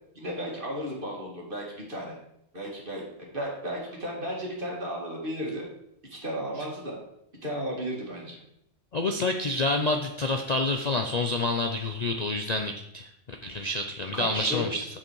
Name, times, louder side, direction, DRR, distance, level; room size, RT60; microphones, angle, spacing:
voice 1, 0.1-2.2 2.5-3.0 3.3-5.7 6.1-7.0 7.4-8.4 14.1-14.6, equal, 45° right, -2 dB, 2.5 m, -34 dB
voice 2, 8.9-14.9, left 2 dB, 45° left, 5 dB, 0.6 m, -28 dB
7.9 x 7.3 x 4.6 m, 0.76 s
omnidirectional pair, 1.3 m